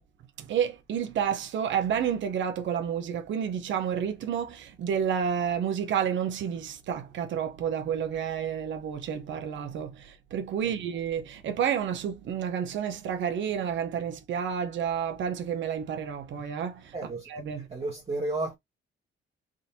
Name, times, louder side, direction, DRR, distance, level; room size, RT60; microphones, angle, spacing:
voice 1, 0.5-16.9 17.3-17.6, right 8 dB, 70° right, 0.9 m, -30 dB
voice 2, 16.9-17.3 17.7-18.5, right 2 dB, 30° right, 1.1 m, -32 dB
3.8 x 2.6 x 4.2 m
cardioid pair, 90°, 20 cm